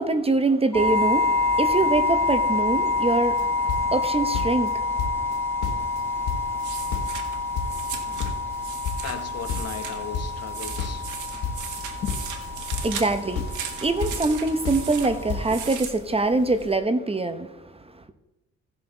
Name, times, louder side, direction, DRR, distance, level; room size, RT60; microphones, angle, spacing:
voice 1, 0.0-3.5 3.9-4.9 12.8-18.0, right 2 dB, 20° right, 0.9 m, -24 dB
sound 1, 0.7-15.7, left 3 dB, 10° left, 1.6 m, -28 dB
sound 2, 3.1-3.4 3.7-4.7 5.0-5.4 5.6-7.3 7.5-10.5 10.8-13.1 13.3-14.4 14.6-15.0 15.3-15.5, left 6 dB, 90° left, 1.3 m, -31 dB
sound 3, 5.8-16.8, right 7 dB, 80° right, 1.6 m, -38 dB
voice 2, 9.0-11.0 12.0-12.1, left 7 dB, 55° left, 1.2 m, -36 dB
17.0 x 6.2 x 3.9 m
cardioid pair, 90°, 30 cm